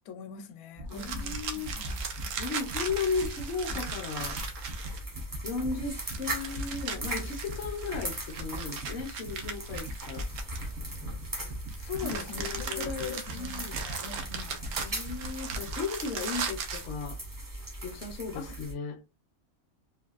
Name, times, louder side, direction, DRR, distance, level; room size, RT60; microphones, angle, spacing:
voice 1, 0.1-2.0 11.8-14.9 18.3-18.6, left 6 dB, 80° left, 1.0 m, -41 dB
sound 1, 0.7-15.8, left 1 dB, 65° right, 0.9 m, -42 dB
voice 2, 0.9-1.7 2.4-4.4 5.4-10.3 12.0-13.8 14.8-17.2 17.8-19.0, left 4 dB, 55° left, 0.8 m, -35 dB
sound 2, 0.9-18.7, right 1 dB, 20° right, 0.5 m, -40 dB
sound 3, 0.9-5.2 6.0-11.0 11.7-16.9, right 6 dB, 85° right, 1.1 m, -38 dB
3.4 x 2.3 x 2.3 m
omnidirectional pair, 1.5 m